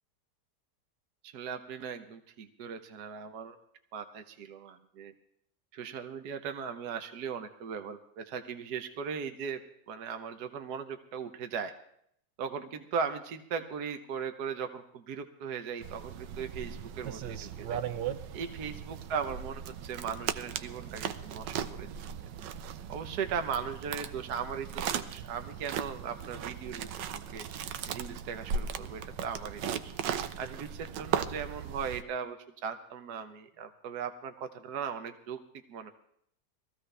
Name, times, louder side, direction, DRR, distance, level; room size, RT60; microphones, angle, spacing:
voice 1, 1.2-3.6 3.9-5.1 5.7-9.6 9.9-11.7 12.4-17.8 18.3-21.9 22.9-32.4 32.6-35.4 35.7-35.9, right 6 dB, 65° right, 8 dB, 1.4 m, -38 dB
sound 1, 15.8-32.0, right 8 dB, 90° right, 1.4 m, -37 dB
21.0 x 15.0 x 3.3 m, 0.70 s
omnidirectional pair, 1.9 m